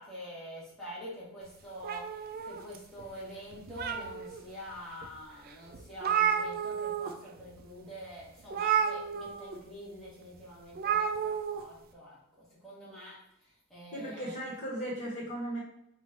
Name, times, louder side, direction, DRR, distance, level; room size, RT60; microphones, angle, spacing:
voice 1, 0.0-2.1 2.4-13.2 13.7-14.4, equal, ahead, -8 dB, 1.4 m, -46 dB
sound 1, 1.8-3.0 3.5-4.4 5.0-5.1 5.5-5.6 5.7-7.1 7.4-7.6 8.5-9.5 10.7-11.6, right 8 dB, 45° right, 0.4 m, -31 dB
voice 2, 13.9-15.6, right 1 dB, 35° left, -5 dB, 1.5 m, -36 dB
4.0 x 2.5 x 4.5 m, 0.80 s
head